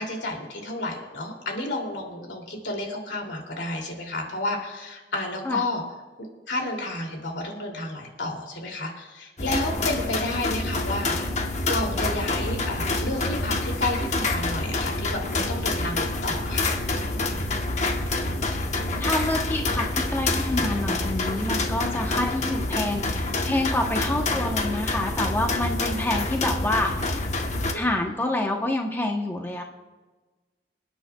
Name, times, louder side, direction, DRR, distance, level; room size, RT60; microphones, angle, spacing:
voice 1, 0.0-5.8 6.5-11.4 11.7-16.7 20.5-20.7 24.0-24.2 27.7-27.8, left 2 dB, 85° left, 1 dB, 2.6 m, -31 dB
sound 1, 9.4-27.7, left 2 dB, 40° left, 1.0 m, -27 dB
voice 2, 18.8-27.3 27.7-29.6, left 1 dB, 10° left, 1 dB, 0.8 m, -27 dB
27.0 x 9.3 x 2.3 m, 1.3 s
head